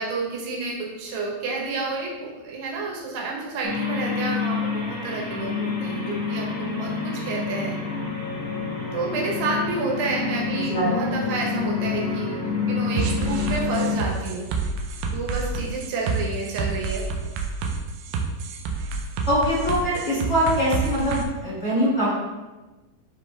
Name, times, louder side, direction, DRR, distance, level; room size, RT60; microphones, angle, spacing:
voice 1, 0.0-7.8 8.9-12.4 12.7-14.5 15.1-17.1, right 3 dB, 65° right, -2 dB, 2.2 m, -30 dB
sound 1, 3.6-14.0, left 5 dB, 50° left, 2.5 m, -28 dB
voice 2, 10.5-11.2 19.3-22.1, equal, 30° left, -10 dB, 1.3 m, -23 dB
sound 2, 13.0-21.2, right 4 dB, 90° right, 2.5 m, -28 dB
9.6 x 3.3 x 3.3 m, 1.2 s
omnidirectional pair, 4.3 m